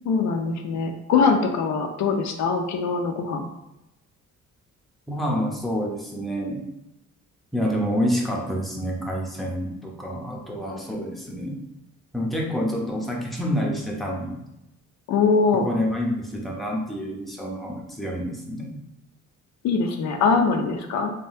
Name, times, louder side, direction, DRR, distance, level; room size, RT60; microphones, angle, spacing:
voice 1, 0.1-3.4 15.1-15.7 19.6-21.1, left 5 dB, 70° left, 5 dB, 0.5 m, -22 dB
voice 2, 5.1-6.6 7.5-11.6 12.1-14.4 15.5-18.8, equal, ahead, -2 dB, 0.7 m, -28 dB
3.4 x 2.2 x 2.6 m, 0.90 s
cardioid pair, 90°, 30 cm